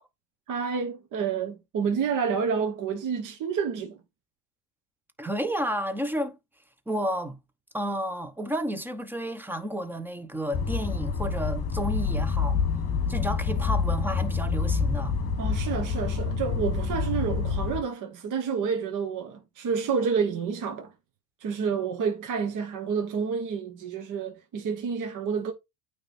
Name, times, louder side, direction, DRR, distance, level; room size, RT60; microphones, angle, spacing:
voice 1, 0.5-4.0 15.4-20.9 21.4-25.5, right 6 dB, 40° right, 1.2 m, -29 dB
voice 2, 5.2-6.4 6.9-7.4 7.7-12.6 13.1-15.2, equal, 5° right, 0.9 m, -31 dB
sound 1, 10.5-17.8, left 5 dB, 30° left, 1.8 m, -27 dB
8.8 x 3.4 x 4.3 m
supercardioid pair, 120°, 47 cm